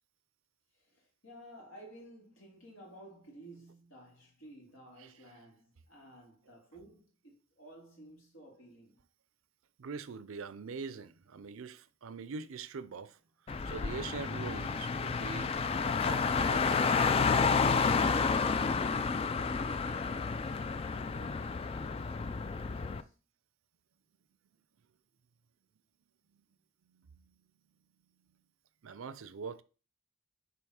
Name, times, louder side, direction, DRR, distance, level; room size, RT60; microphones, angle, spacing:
voice 1, 0.7-9.0 17.7-23.2, right 1 dB, 70° left, 2.4 m, -55 dB
voice 2, 9.8-13.2 13.5-15.5 15.8-16.6 26.3-26.4 26.9-27.3 28.8-29.6, right 5 dB, 75° right, 0.5 m, -43 dB
Car, 13.5-23.0, left 5 dB, 30° left, 0.3 m, -30 dB
7.0 x 3.1 x 4.8 m
head